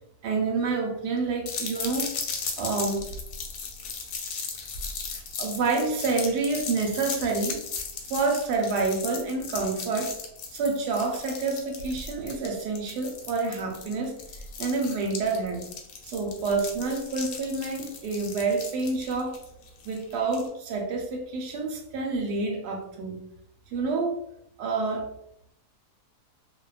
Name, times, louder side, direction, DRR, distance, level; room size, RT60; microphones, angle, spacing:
voice 1, 0.2-2.1 2.6-3.1 5.1-7.6 8.1-10.2 10.5-14.2 14.6-15.7 16.0-19.4 19.8-23.2 23.7-24.2 24.6-25.1, right 3 dB, 90° right, 2 dB, 1.2 m, -28 dB
sound 1, 1.5-20.5, left 5 dB, 85° left, 1.2 m, -37 dB
2.6 x 2.2 x 2.3 m, 0.75 s
omnidirectional pair, 1.7 m